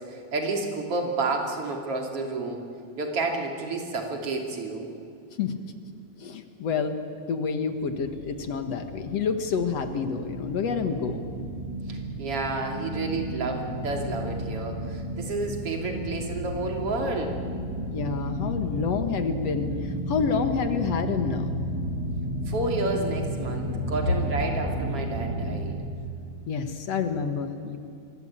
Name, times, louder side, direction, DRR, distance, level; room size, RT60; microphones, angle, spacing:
voice 1, 0.1-2.7 3.0-4.9 11.9-17.4 22.5-25.8, right 3 dB, 50° right, 2 dB, 3.6 m, -30 dB
voice 2, 6.2-7.0 7.3-11.2 17.9-21.6 26.5-27.8, left 5 dB, 65° left, 8 dB, 2.4 m, -28 dB
sound 1, 7.8-25.5, equal, 65° right, 6.5 m, -33 dB
26.0 x 23.5 x 8.7 m, 2.6 s
omnidirectional pair, 3.3 m